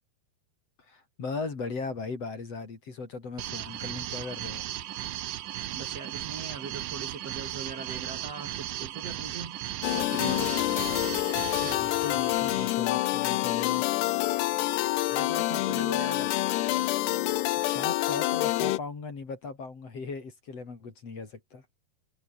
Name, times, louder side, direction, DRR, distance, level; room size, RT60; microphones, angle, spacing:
voice 1, 0.9-4.6 11.6-14.0 17.6-21.6, left 4 dB, 40° left, 4.6 m, -38 dB
sound 1, 3.4-12.7, right 13 dB, 65° right, 2.6 m, -36 dB
voice 2, 5.7-9.6 9.9-10.6 15.1-16.3, right 5 dB, 45° right, 3.2 m, -40 dB
sound 2, 9.8-18.8, left 17 dB, 90° left, 3.1 m, -27 dB
omnidirectional pair, 4.6 m